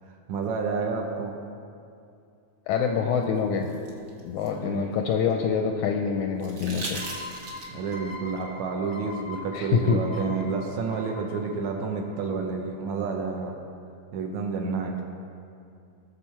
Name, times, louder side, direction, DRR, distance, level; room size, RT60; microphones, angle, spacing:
voice 1, 0.3-1.4 4.6-4.8 7.7-13.6 14.1-15.0, right 4 dB, 70° right, 2 dB, 1.9 m, -30 dB
voice 2, 2.7-3.8 4.2-7.0 9.5-10.0, left 6 dB, 80° left, 3 dB, 1.8 m, -25 dB
sound 1, 3.2-5.5 6.4-7.9 9.6-9.7, right 2 dB, 50° right, 1.6 m, -40 dB
sound 2, 6.9-12.4, left 3 dB, 50° left, 0.7 m, -42 dB
18.5 x 6.7 x 4.3 m, 2.5 s
omnidirectional pair, 3.9 m